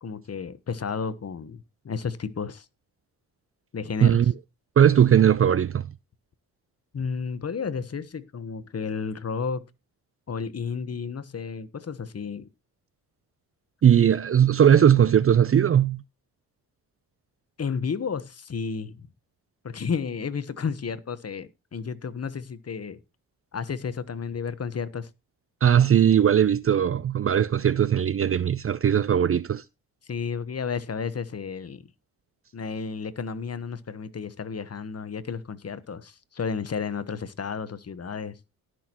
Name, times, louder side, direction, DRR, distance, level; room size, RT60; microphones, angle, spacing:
voice 1, 0.0-2.7 3.7-4.3 6.9-9.6 10.3-12.5 17.6-19.1 19.6-23.0 23.5-25.1 30.0-31.8 32.5-38.4, left 6 dB, 40° left, 1.1 m, -32 dB
voice 2, 4.8-5.9 13.8-16.0 25.6-29.6, right 9 dB, 35° right, 0.5 m, -19 dB
17.5 x 6.3 x 3.0 m
supercardioid pair, 55°, 40 cm